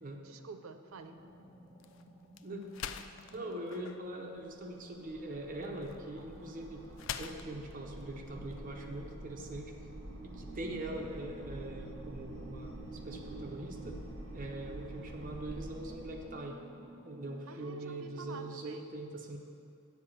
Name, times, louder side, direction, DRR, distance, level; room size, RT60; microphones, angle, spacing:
voice 1, 0.1-1.2 17.5-18.9, right 4 dB, 80° right, 8 dB, 0.6 m, -49 dB
sound 1, 0.9-9.2, left 8 dB, 65° left, 0.3 m, -48 dB
sound 2, 1.0-3.4 3.8-9.4 9.8-14.9 15.2-18.6, equal, 20° left, 1.5 m, -57 dB
voice 2, 3.3-6.9 7.2-9.7 10.2-14.0 14.3-16.6 17.0-19.4, right 1 dB, 40° right, 1 dB, 0.8 m, -42 dB
sound 3, 4.5-16.3, right 1 dB, 65° right, 1.1 m, -47 dB
8.5 x 5.0 x 7.3 m, 2.5 s
head